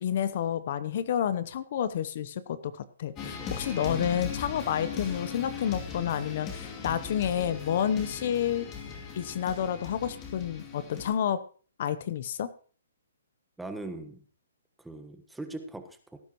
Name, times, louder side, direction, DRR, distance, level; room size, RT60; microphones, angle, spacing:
voice 1, 0.0-8.7 9.1-11.4 11.8-12.5, left 9 dB, 50° left, 14 dB, 0.8 m, -30 dB
sound 1, 3.2-11.1, left 6 dB, 25° left, 2.8 m, -39 dB
voice 2, 4.0-4.3 13.6-14.2 14.8-16.2, right 2 dB, 5° right, 7 dB, 1.3 m, -40 dB
17.5 x 10.5 x 3.1 m, 0.42 s
hypercardioid pair, 145°, 0 cm